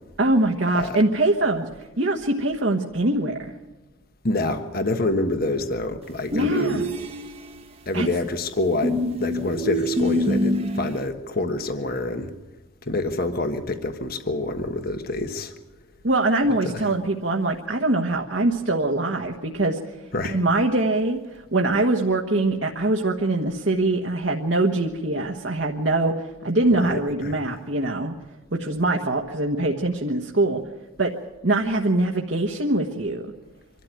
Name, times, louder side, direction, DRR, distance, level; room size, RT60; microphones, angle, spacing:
voice 1, 0.2-1.7 2.0-3.3 6.3-6.9 7.9-8.1 16.0-20.0 20.3-28.1 28.5-30.6 31.0-31.1 31.4-33.2, right 2 dB, 60° right, 1 dB, 1.4 m, -23 dB
voice 2, 4.2-6.9 7.9-12.3 12.8-15.5 16.6-16.8 20.1-20.4 26.7-26.9 27.2-27.4, left 2 dB, 45° left, 7 dB, 1.4 m, -27 dB
sound 1, 6.3-7.6 8.8-11.0, left 1 dB, 30° right, 1.2 m, -25 dB
25.0 x 12.5 x 9.0 m, 1.1 s
head